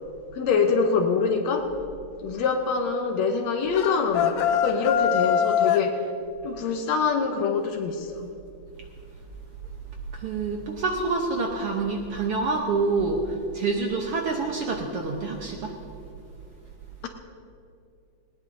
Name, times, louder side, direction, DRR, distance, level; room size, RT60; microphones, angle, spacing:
voice 1, 0.3-1.7 2.2-6.0 6.4-8.3, left 5 dB, 70° left, 4 dB, 1.9 m, -25 dB
sound 1, 3.7-5.9, left 9 dB, 90° left, 1.4 m, -23 dB
voice 2, 10.1-15.7, right 3 dB, 65° right, 1 dB, 1.5 m, -27 dB
19.0 x 19.0 x 2.7 m, 2.5 s
omnidirectional pair, 3.6 m